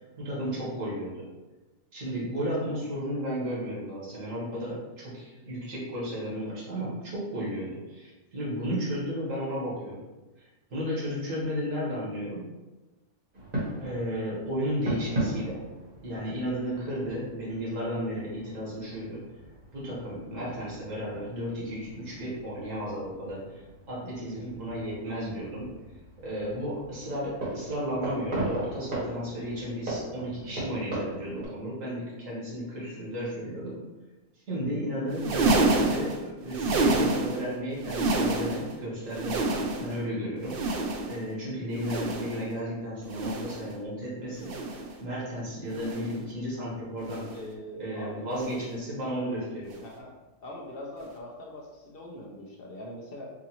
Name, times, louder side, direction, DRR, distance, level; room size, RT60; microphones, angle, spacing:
voice 1, 0.2-1.3 1.9-10.0 10.7-12.4 13.8-15.6 16.0-19.2 19.7-25.7 26.2-33.8 34.5-40.8 41.1-44.5 45.0-47.3 47.8-49.8, equal, 60° right, -7 dB, 1.8 m, -33 dB
sound 1, 13.3-31.4, right 1 dB, 35° right, 1.3 m, -38 dB
sound 2, 35.1-37.5 37.8-38.7 39.1-40.0 40.4-41.3 41.7-42.5 43.0-43.7 44.4-44.9 45.7-46.2 47.0-47.5 48.4-48.7 49.7-49.9 51.0-51.1, right 2 dB, 85° right, 0.5 m, -28 dB
voice 2, 47.0-48.3 49.8-50.1 50.4-53.3, left 1 dB, 55° left, -2 dB, 0.7 m, -42 dB
4.8 x 2.5 x 2.9 m, 1.1 s
omnidirectional pair, 1.5 m